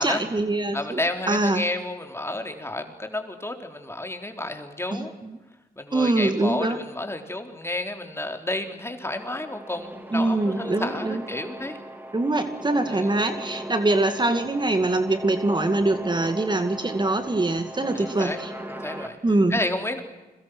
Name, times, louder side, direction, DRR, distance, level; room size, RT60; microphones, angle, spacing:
voice 1, 0.0-1.0 1.3-1.6 4.9-5.1 5.9-6.8 10.1-11.2 12.1-18.5 19.2-19.5, right 2 dB, 30° right, 8 dB, 2.2 m, -23 dB
voice 2, 0.7-5.1 5.8-11.8 12.9-13.1 17.9-18.4 18.7-19.2 19.5-20.0, left 1 dB, 15° left, 5 dB, 3.7 m, -31 dB
sound 1, 9.1-19.1, right 1 dB, 15° right, 3.7 m, -38 dB
30.0 x 22.5 x 6.3 m, 1.1 s
cardioid pair, 65°, 16 cm